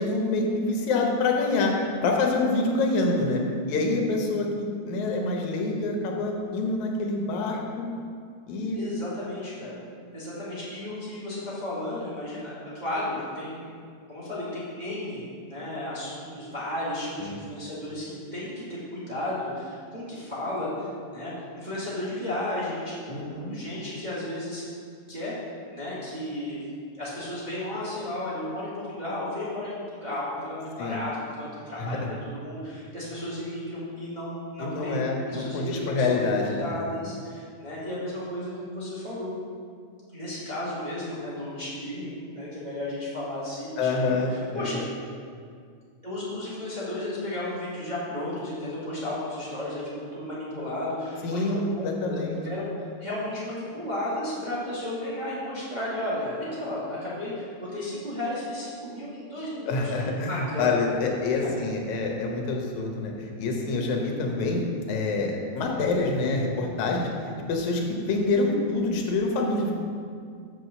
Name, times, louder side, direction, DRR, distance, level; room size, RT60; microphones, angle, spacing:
voice 1, 0.0-1.7 2.0-3.4 3.7-7.9 8.5-8.8 17.2-17.4 23.1-23.6 30.8-31.0 31.8-32.1 34.6-36.7 43.8-44.7 51.2-52.4 59.7-67.1 67.5-69.7, left 3 dB, 80° left, 1 dB, 2.3 m, -26 dB
voice 2, 8.7-9.7 10.1-13.7 14.1-24.6 25.1-25.4 25.7-26.6 27.0-29.7 30.0-39.3 40.1-44.8 46.0-60.9 61.3-61.5, left 1 dB, 25° right, -10 dB, 1.0 m, -34 dB
6.3 x 4.9 x 6.6 m, 2.2 s
omnidirectional pair, 3.3 m